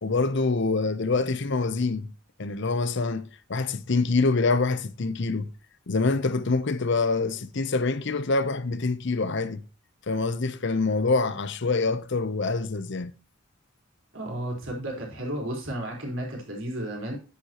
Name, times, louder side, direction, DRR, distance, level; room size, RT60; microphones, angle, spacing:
voice 1, 0.0-2.1 2.4-5.5 5.9-9.6 10.1-13.1, left 3 dB, 55° left, 0.7 m, -25 dB
voice 2, 14.1-17.2, right 1 dB, 65° right, 4.2 m, -33 dB
9.9 x 9.4 x 2.9 m
head